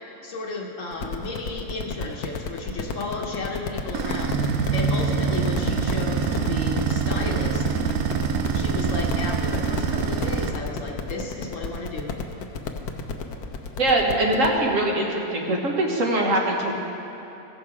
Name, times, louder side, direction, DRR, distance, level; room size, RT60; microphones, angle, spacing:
voice 1, 0.2-7.7 8.5-12.1, left 3 dB, 60° left, 0 dB, 1.3 m, -33 dB
sound 1, 0.9-14.6, left 4 dB, 85° left, 1.2 m, -33 dB
sound 2, 3.9-10.5, right 6 dB, 75° right, 1.1 m, -25 dB
voice 2, 13.8-16.7, right 1 dB, 60° right, -1 dB, 1.6 m, -22 dB
16.0 x 6.5 x 4.7 m, 2.9 s
omnidirectional pair, 1.6 m